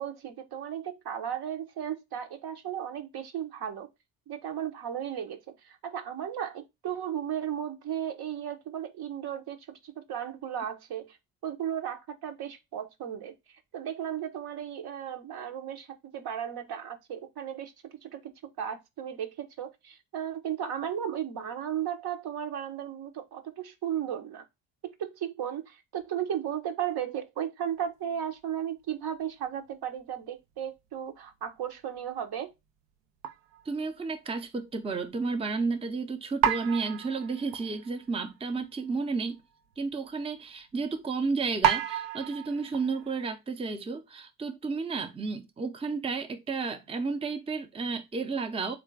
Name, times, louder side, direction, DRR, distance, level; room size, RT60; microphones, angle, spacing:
voice 1, 0.0-3.9 4.3-11.2 11.4-13.3 13.7-15.9 16.1-17.7 18.0-18.3 18.6-24.4 24.8-32.5, right 9 dB, 55° right, 0.9 m, -35 dB
sound 1, 33.2-33.7 34.3-34.4 36.4-38.1 38.5-38.7 38.9-39.1 39.7-39.8 41.6-43.3, right 9 dB, 80° right, 0.6 m, -30 dB
voice 2, 33.7-39.4 39.8-48.7, right 4 dB, 15° right, 0.6 m, -32 dB
3.7 x 2.5 x 4.5 m
hypercardioid pair, 55°, 45 cm